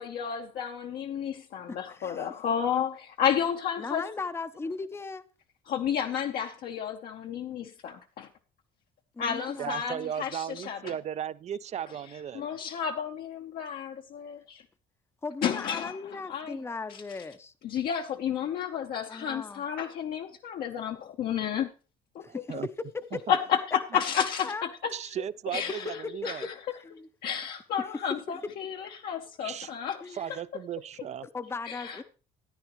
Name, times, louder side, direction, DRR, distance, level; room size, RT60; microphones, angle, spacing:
voice 1, 0.0-4.0 5.7-8.3 9.2-10.9 12.3-14.6 15.4-16.6 17.6-21.7 22.1-22.2 23.3-24.5 24.8-24.9 25.5-26.0 26.2-26.5 27.2-30.2 31.6-32.0, left 8 dB, 65° left, 0.8 m, -31 dB
voice 2, 1.7-2.3 3.8-5.3 9.1-10.1 15.2-17.5 19.1-19.6 22.2-22.6 23.1-23.2 23.9-24.7 26.0-26.5 26.8-27.1 30.0-30.3 31.3-32.0, left 4 dB, 15° left, 0.6 m, -38 dB
voice 3, 9.6-12.5 22.3-22.7 23.1-23.2 24.9-26.5 29.4-29.7 30.1-31.3, right 9 dB, 40° right, 0.4 m, -36 dB
14.0 x 9.7 x 3.0 m
cardioid pair, 110°, 17 cm